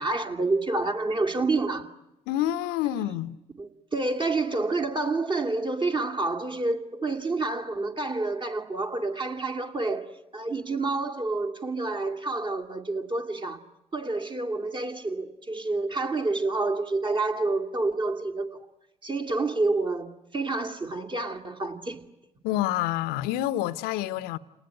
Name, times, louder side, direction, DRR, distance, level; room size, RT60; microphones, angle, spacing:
voice 1, 0.0-1.9 3.6-10.1 10.3-13.6 13.9-18.6 19.0-22.0, right 3 dB, 30° right, 2.6 m, -28 dB
voice 2, 2.3-3.4 22.4-24.4, left 13 dB, 70° left, 1.0 m, -28 dB
30.0 x 19.5 x 9.8 m
hypercardioid pair, 50°, 17 cm